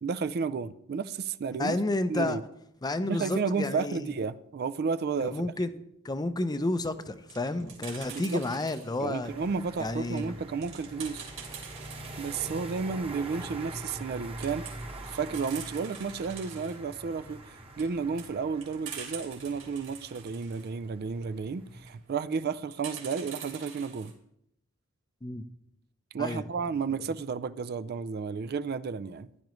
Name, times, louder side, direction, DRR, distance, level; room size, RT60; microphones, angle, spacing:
voice 1, 0.0-1.8 2.1-2.4 3.1-5.5 8.1-8.4 9.0-11.2 12.2-14.6 15.1-17.4 17.8-24.1 26.1-29.3, right 5 dB, 45° right, 0.4 m, -32 dB
voice 2, 1.6-2.4 2.8-4.1 5.3-5.7 6.0-9.3 9.8-10.4 25.2-25.4 26.2-26.4, left 2 dB, 20° left, 0.5 m, -31 dB
sound 1, 7.0-9.1 9.6-12.4 12.8-12.9 13.1-13.2 13.6-14.1 14.4-16.8 17.4-20.7 21.7-22.0 22.7-24.1, right 7 dB, 80° right, 3.2 m, -45 dB
sound 2, 9.2-21.9, right 1 dB, 25° right, 1.1 m, -44 dB
15.0 x 10.5 x 3.1 m
head